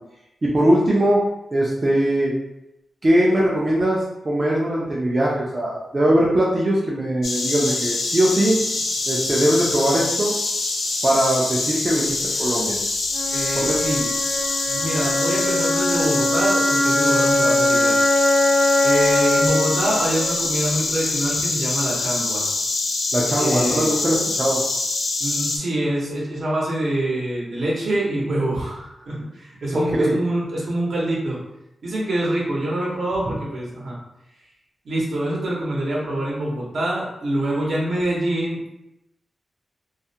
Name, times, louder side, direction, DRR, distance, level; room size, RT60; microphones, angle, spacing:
voice 1, 0.4-1.2 1.5-2.3 3.0-8.6 9.1-10.3 11.0-12.8 13.6-13.8 23.1-24.6 29.7-30.1, right 1 dB, 30° right, -4 dB, 0.4 m, -20 dB
Insect, 7.2-25.6, left 3 dB, 85° left, 0.4 m, -25 dB
Wind instrument woodwind instrument, 13.1-21.1, left 1 dB, 30° left, 0.5 m, -22 dB
voice 2, 13.3-14.1 14.7-18.0 18.8-22.5 23.4-24.0 25.2-31.4 31.8-34.0 34.8-38.7, right 1 dB, 70° right, -5 dB, 0.8 m, -25 dB
2.3 x 2.0 x 2.7 m, 0.87 s
wide cardioid pair, 155°, 0 cm